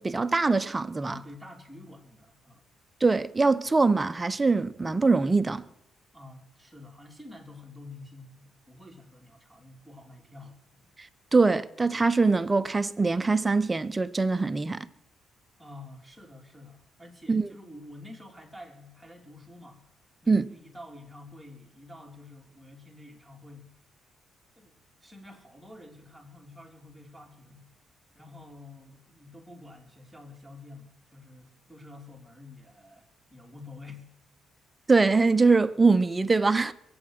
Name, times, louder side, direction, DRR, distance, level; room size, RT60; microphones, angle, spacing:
voice 1, 0.0-1.1 3.0-5.6 11.3-14.9 17.3-17.5 20.3-20.5 34.9-36.7, right 3 dB, 20° right, 0.8 m, -23 dB
voice 2, 1.0-2.6 6.1-10.9 15.6-19.9 20.2-23.7 24.6-27.7 28.1-34.1, left 2 dB, ahead, 3.5 m, -48 dB
22.0 x 8.8 x 6.5 m
cardioid pair, 90°, 0 cm